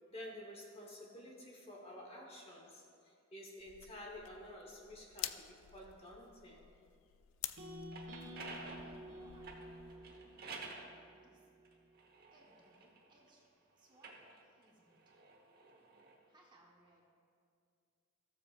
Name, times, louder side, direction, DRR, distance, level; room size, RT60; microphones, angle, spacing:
voice 1, 0.1-6.7, left 1 dB, 30° left, -1 dB, 1.2 m, -51 dB
sound 1, 3.6-10.0, left 13 dB, 70° left, 0.3 m, -49 dB
sound 2, 7.6-11.7, equal, 70° right, 1.3 m, -51 dB
sound 3, 7.7-10.9 11.6-13.3 13.9-16.2, right 3 dB, 45° right, 1.0 m, -51 dB
voice 2, 8.1-9.6 11.1-11.5 12.3-13.4 13.8-15.0 15.6-15.7 16.3-17.1, right 1 dB, 20° right, -3 dB, 1.2 m, -68 dB
16.0 x 7.2 x 2.5 m, 2.3 s
head